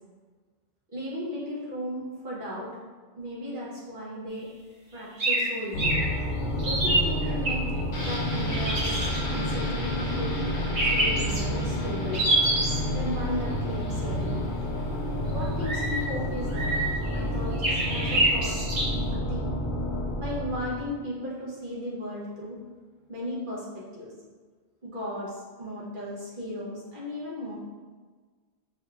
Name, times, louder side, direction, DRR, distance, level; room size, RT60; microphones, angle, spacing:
voice 1, 0.9-2.7 3.2-4.5 4.9-6.0 6.6-7.6 8.0-9.0 9.3-12.3 12.9-14.5 15.3-16.7 17.1-18.6 18.9-19.5 20.2-22.6 23.1-24.1 24.8-27.6, equal, 50° right, -6 dB, 1.1 m, -36 dB
sound 1, 5.2-5.4 5.8-6.0 6.6-7.5 8.5-9.2 10.7-11.4 12.1-12.8 15.6-16.0 16.5-17.1 17.6-18.8, right 2 dB, 80° right, 1.9 m, -25 dB
sound 2, 5.7-20.9, left 1 dB, 80° left, 0.9 m, -30 dB
sound 3, 7.9-17.6 17.9-18.0, equal, 55° left, 1.0 m, -38 dB
5.4 x 2.9 x 2.3 m, 1.4 s
omnidirectional pair, 1.1 m